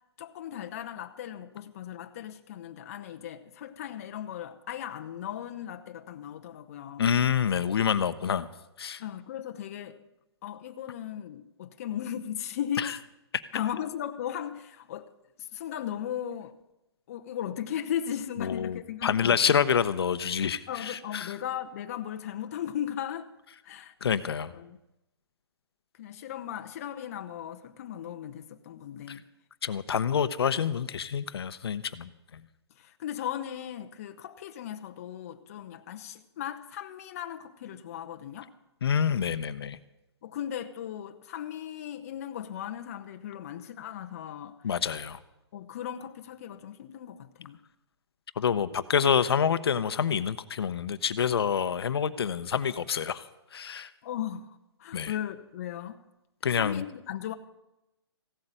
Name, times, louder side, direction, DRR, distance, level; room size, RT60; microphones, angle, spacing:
voice 1, 0.2-7.1 9.0-10.0 10.4-12.9 13.5-15.1 15.4-16.5 17.1-19.4 20.7-23.3 23.6-23.9 24.3-24.8 26.0-29.2 32.8-38.5 40.2-44.8 45.5-47.6 54.0-56.0 56.5-57.3, left 10 dB, 35° left, 0.8 m, -37 dB
voice 2, 7.0-8.5 8.8-9.0 12.8-13.0 18.4-21.3 24.0-24.5 29.1-29.2 29.6-32.4 38.8-39.8 44.6-45.2 48.4-53.2 53.5-53.9 54.9-55.1 56.4-56.8, left 7 dB, 60° left, 0.8 m, -27 dB
15.5 x 8.0 x 9.0 m
hypercardioid pair, 160°, 14 cm